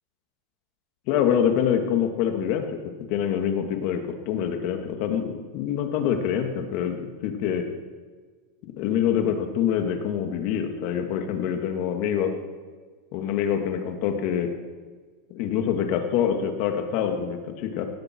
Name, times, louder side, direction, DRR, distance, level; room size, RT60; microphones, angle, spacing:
voice 1, 1.1-4.0 4.3-7.7 8.8-12.3 13.1-14.5 15.3-17.9, left 8 dB, 55° left, 5 dB, 2.4 m, -25 dB
17.0 x 16.5 x 4.8 m, 1.5 s
supercardioid pair, 135°, 0 cm